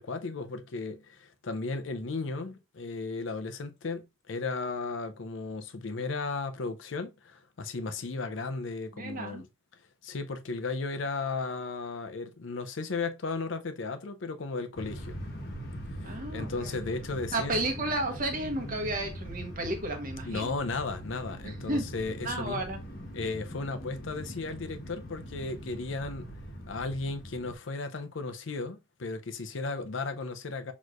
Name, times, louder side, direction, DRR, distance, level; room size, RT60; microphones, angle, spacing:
voice 1, 0.0-9.5 10.0-15.2 16.0-17.6 20.2-22.6 23.1-26.3 26.7-30.7, left 3 dB, 70° left, 0.6 m, -35 dB
voice 2, 8.9-9.4 16.0-16.7 17.3-20.6 21.4-21.9 22.2-22.8, right 2 dB, 45° right, 1.1 m, -33 dB
sound 1, 14.8-27.5, equal, 50° left, 1.2 m, -42 dB
6.3 x 3.1 x 2.5 m
head